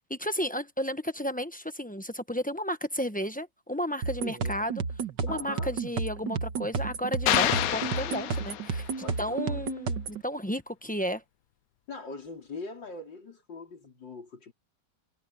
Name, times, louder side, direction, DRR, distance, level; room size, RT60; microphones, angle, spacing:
voice 1, 0.1-4.8 5.2-8.9 9.2-11.2, equal, 5° left, 0.7 m, -33 dB
sound 1, 4.0-10.2, right 5 dB, 80° right, 2.1 m, -32 dB
voice 2, 4.2-4.5 5.3-5.7 9.0-9.6 11.9-14.5, left 3 dB, 85° left, 4.9 m, -42 dB
sound 2, 7.3-9.0, left 12 dB, 65° left, 1.0 m, -28 dB
omnidirectional pair, 1.9 m